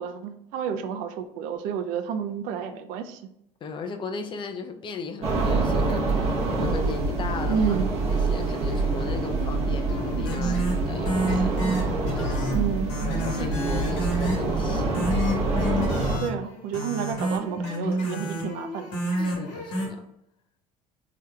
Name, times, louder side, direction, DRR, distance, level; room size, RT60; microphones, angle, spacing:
voice 1, 0.0-3.3 7.5-7.9 12.5-12.9 16.2-18.9, right 7 dB, 75° right, 8 dB, 0.4 m, -30 dB
voice 2, 3.6-7.8 8.1-12.6 13.0-15.0 18.2-18.4 19.2-20.1, left 4 dB, 35° left, 7 dB, 0.4 m, -37 dB
sound 1, 5.2-16.2, right 3 dB, 45° right, 0.9 m, -26 dB
sound 2, 9.9-19.9, equal, 80° left, 1.1 m, -30 dB
3.4 x 2.8 x 2.2 m, 0.78 s
supercardioid pair, 95°, 14 cm